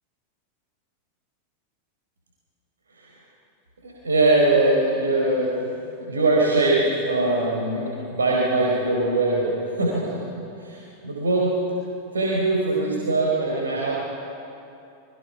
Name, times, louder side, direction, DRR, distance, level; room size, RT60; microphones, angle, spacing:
voice 1, 3.8-5.7 6.0-9.5 9.8-10.2 10.6-11.6 12.1-14.0, right 2 dB, 70° right, -4 dB, 4.6 m, -22 dB
27.5 x 22.5 x 6.0 m, 2.7 s
figure-of-eight pair, 90°, 0 cm